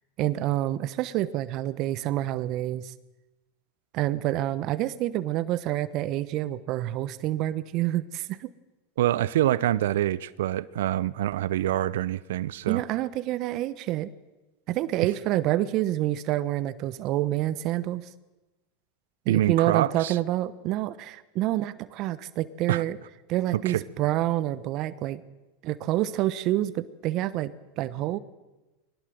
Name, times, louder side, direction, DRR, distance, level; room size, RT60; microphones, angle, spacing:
voice 1, 0.2-2.9 3.9-8.5 12.7-14.1 14.7-18.1 19.3-23.0 23.3-25.2 25.6-28.2, right 14 dB, 50° right, 1.0 m, -27 dB
voice 2, 9.0-12.8 19.3-20.2 22.7-22.8 23.5-23.8, right 13 dB, 75° right, 0.6 m, -25 dB
21.5 x 19.0 x 7.7 m
hypercardioid pair, 95°, 0 cm